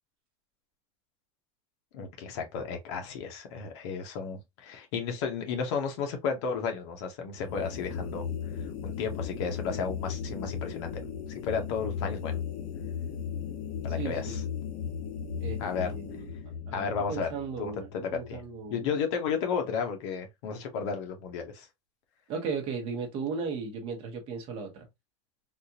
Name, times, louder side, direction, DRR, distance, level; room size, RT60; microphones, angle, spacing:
voice 1, 1.9-8.2 8.5-12.4 13.8-14.4 15.6-15.9 16.7-17.3 17.6-18.4 18.7-21.7, left 6 dB, 60° left, 1.1 m, -33 dB
sound 1, 7.3-18.7, left 7 dB, 45° left, 0.7 m, -36 dB
voice 2, 13.9-14.4 15.4-16.3 16.7-18.9 22.3-24.9, right 5 dB, 35° right, 1.1 m, -36 dB
3.6 x 2.5 x 2.8 m
supercardioid pair, 170°, 16 cm